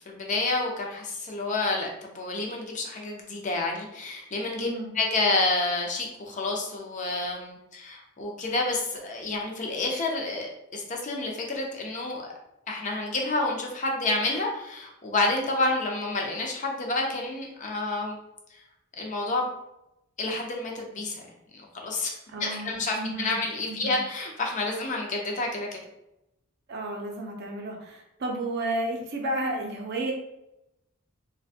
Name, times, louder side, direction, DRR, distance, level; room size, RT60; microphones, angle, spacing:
voice 1, 0.1-4.7 4.9-12.3 12.7-18.2 19.0-19.5 20.2-21.2 21.7-25.8, left 2 dB, 35° left, 0 dB, 0.5 m, -29 dB
voice 2, 4.6-4.9 22.3-23.3 23.7-24.0 26.7-30.1, right 1 dB, 50° right, 1 dB, 0.5 m, -32 dB
2.4 x 2.2 x 2.6 m, 0.87 s
head